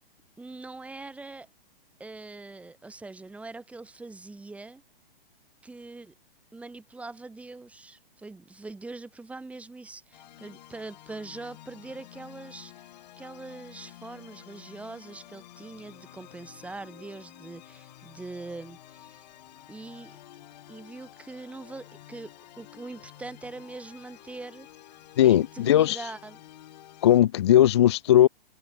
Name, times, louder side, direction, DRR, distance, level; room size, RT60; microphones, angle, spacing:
voice 1, 0.4-1.5 2.0-4.8 5.6-6.1 6.5-12.9 13.2-19.3 19.7-20.2 20.7-24.7 25.2-26.4, right 3 dB, 5° right, 4.0 m, -42 dB
sound 1, 10.1-27.2, left 14 dB, 45° left, 7.2 m, -50 dB
voice 2, 25.2-26.1 27.0-28.3, left 12 dB, 30° left, 0.4 m, -18 dB
open air
hypercardioid pair, 155°, 30 cm